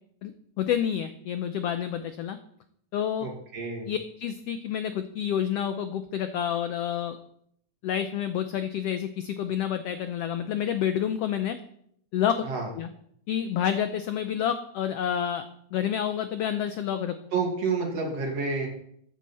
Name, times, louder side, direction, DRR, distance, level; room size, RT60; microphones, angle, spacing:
voice 1, 0.6-2.4 2.9-3.3 3.9-7.2 7.8-11.6 12.1-12.3 12.8-12.9 13.3-15.4 15.7-17.1, left 9 dB, 85° left, 9 dB, 1.3 m, -28 dB
voice 2, 3.2-3.9 12.4-12.7 17.3-18.7, right 4 dB, 55° right, 1 dB, 3.2 m, -29 dB
14.0 x 9.2 x 4.3 m, 0.68 s
omnidirectional pair, 3.5 m